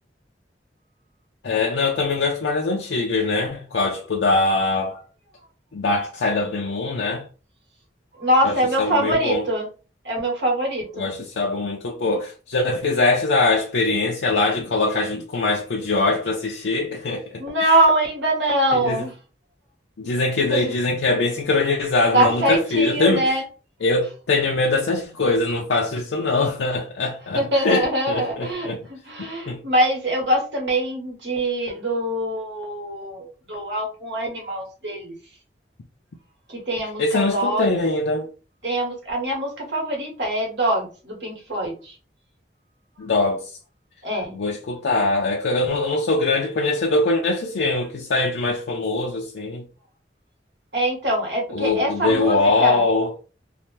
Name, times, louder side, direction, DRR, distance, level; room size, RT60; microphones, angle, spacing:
voice 1, 1.4-5.0 5.7-7.2 8.4-9.4 11.0-17.7 18.7-19.0 20.0-23.2 23.8-28.8 29.2-29.6 37.0-38.3 43.0-43.6 44.3-49.6 51.5-53.1, left 3 dB, 85° left, 0.5 m, -22 dB
voice 2, 8.2-9.7 10.0-11.1 17.4-19.1 20.5-20.7 22.1-23.4 27.3-35.1 36.5-37.7 38.6-42.0 44.0-44.3 50.7-52.8, right 1 dB, 80° right, 1.2 m, -23 dB
2.8 x 2.1 x 3.1 m
head